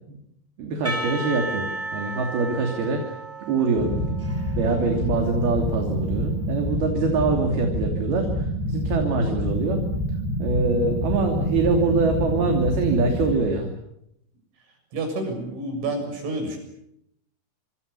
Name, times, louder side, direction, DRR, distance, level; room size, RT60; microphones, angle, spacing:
voice 1, 0.6-3.2 3.5-4.1 4.6-9.8 10.4-13.7, right 3 dB, 55° right, 3 dB, 4.6 m, -24 dB
Percussion / Church bell, 0.8-5.9, right 2 dB, 5° right, 1.6 m, -34 dB
sound 1, 3.8-13.3, equal, 80° left, 9.0 m, -27 dB
voice 2, 14.9-16.6, right 2 dB, 70° right, 5 dB, 9.7 m, -29 dB
26.5 x 26.5 x 7.0 m, 0.77 s
omnidirectional pair, 5.5 m